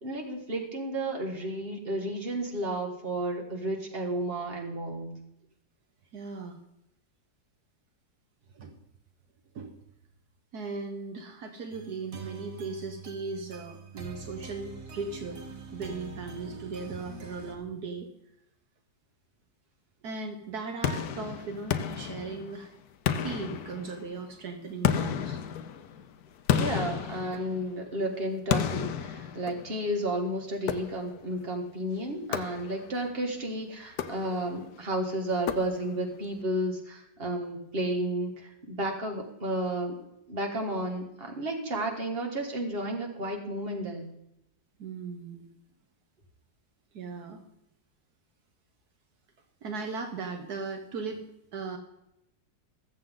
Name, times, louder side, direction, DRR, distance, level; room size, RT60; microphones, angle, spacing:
voice 1, 0.0-5.1 26.6-38.3 38.7-39.9 40.3-44.1, right 1 dB, 35° right, 2 dB, 2.2 m, -32 dB
voice 2, 6.1-6.6 8.5-8.8 9.5-9.8 10.5-15.4 15.7-18.1 20.0-22.7 23.2-25.4 44.8-45.5 46.9-47.4 49.6-51.8, right 4 dB, 70° right, 5 dB, 1.6 m, -38 dB
sound 1, 11.7-17.5, right 4 dB, 55° right, 1.8 m, -44 dB
sound 2, 20.8-22.6 23.1-24.2 24.8-27.9 28.5-29.9 30.7-31.3 32.3-33.0 33.9-34.6 35.5-36.1, left 8 dB, 70° left, 1.2 m, -32 dB
21.0 x 7.6 x 3.8 m, 0.83 s
omnidirectional pair, 1.8 m